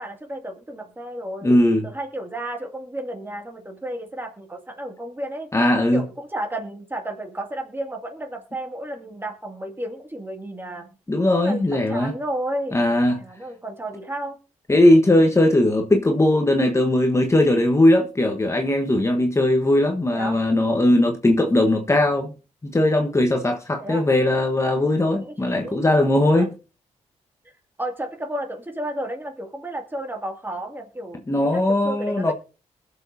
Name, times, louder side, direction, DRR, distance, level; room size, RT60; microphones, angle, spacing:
voice 1, 0.0-1.5 1.8-5.5 5.9-10.9 11.4-14.4 20.1-20.4 23.8-24.0 25.2-25.3 25.6-25.8 26.3-26.5 27.8-32.3, right 1 dB, 15° right, 2.4 m, -32 dB
voice 2, 1.4-1.9 5.5-6.0 11.1-12.1 12.7-13.2 14.7-22.3 22.6-26.5 31.3-32.3, left 1 dB, 20° left, 1.3 m, -19 dB
20.5 x 7.1 x 2.8 m
cardioid pair, 75°, 13 cm